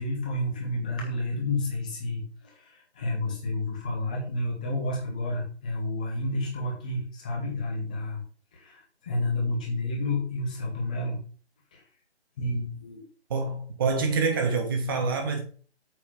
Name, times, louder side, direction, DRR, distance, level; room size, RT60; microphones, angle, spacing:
voice 1, 0.0-8.2 8.5-11.2 11.7-11.8 12.4-13.0, left 2 dB, 5° left, 0.8 m, -30 dB
voice 2, 13.3-15.4, right 4 dB, 20° right, 1.4 m, -26 dB
8.5 x 4.3 x 7.2 m
figure-of-eight pair, 160°, 34 cm